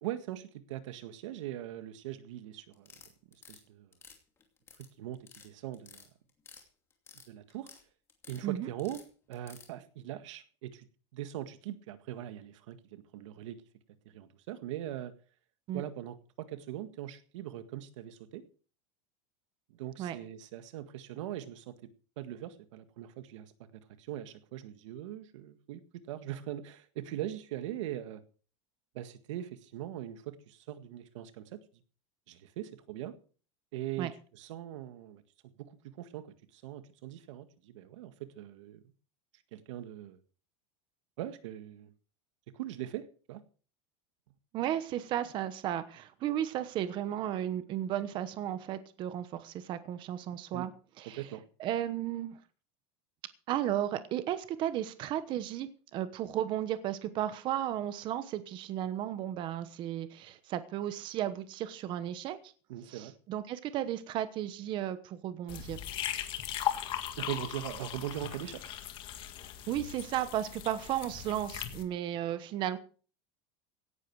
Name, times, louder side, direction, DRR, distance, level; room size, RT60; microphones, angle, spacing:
voice 1, 0.0-2.9 3.5-3.9 5.0-6.0 7.3-7.7 8.3-10.9 11.1-13.6 14.1-15.1 15.7-18.4 19.7-21.9 22.2-28.2 28.9-31.6 32.3-33.2 33.7-35.2 35.6-35.7 36.0-36.3 36.5-38.8 39.5-40.2 41.2-41.9 42.5-43.4 50.5-50.7 51.1-51.4 62.7-63.1 67.2-68.6, right 12 dB, 90° right, 10 dB, 1.8 m, -41 dB
sound 1, 2.7-3.6 3.9-4.9 5.1-5.5 5.7-6.6 6.9-7.8 8.1-8.4 8.8-9.7, left 6 dB, 15° left, 2.7 m, -53 dB
voice 2, 44.5-50.7 51.0-51.2 51.6-52.4 53.5-62.5 62.9-65.8 69.7-72.8, right 11 dB, 30° right, 12 dB, 1.1 m, -34 dB
sound 2, 65.5-71.8, left 11 dB, 35° left, 1.8 m, -38 dB
17.0 x 11.5 x 4.8 m, 0.41 s
supercardioid pair, 175°, 15 cm